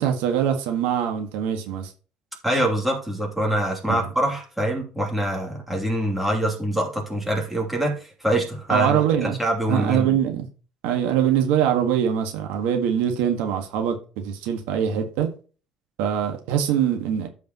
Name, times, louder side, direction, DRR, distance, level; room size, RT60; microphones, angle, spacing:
voice 1, 0.0-1.9 3.9-4.1 8.7-9.4 9.7-10.5 10.8-15.3 16.0-17.3, right 9 dB, 80° right, 1.6 m, -23 dB
voice 2, 2.4-10.1, right 1 dB, 5° right, 2.9 m, -25 dB
13.5 x 5.1 x 3.0 m
cardioid pair, 125°, 2 cm